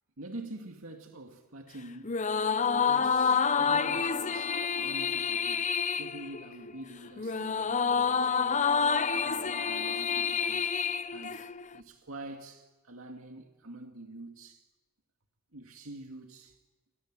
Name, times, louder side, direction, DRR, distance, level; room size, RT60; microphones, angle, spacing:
voice 1, 0.2-2.2 2.7-8.8 9.1-10.8 11.1-14.6 15.5-16.6, right 2 dB, 80° right, 2.3 m, -46 dB
sound 1, 2.0-11.8, left 6 dB, 35° left, 0.8 m, -28 dB
29.0 x 26.0 x 7.6 m
head